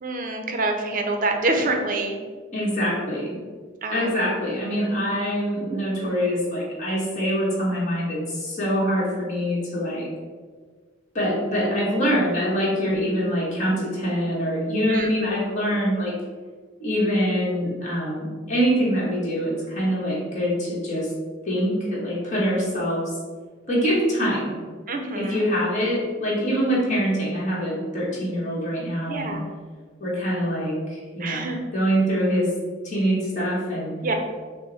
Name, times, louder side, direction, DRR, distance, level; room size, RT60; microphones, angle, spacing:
voice 1, 0.0-2.2 3.8-4.3 4.9-5.1 12.8-13.0 14.9-15.1 21.5-21.7 24.9-25.4 29.1-29.4 31.2-31.6 34.0-34.1, right 2 dB, 45° right, 4 dB, 0.6 m, -27 dB
voice 2, 2.5-3.3 3.9-10.1 11.1-16.1 16.8-21.1 21.4-23.1 23.7-24.6 25.1-29.3 30.0-31.4 31.7-32.5 32.8-33.9, equal, 40° left, -6 dB, 1.3 m, -24 dB
6.1 x 2.1 x 4.0 m, 1.5 s
head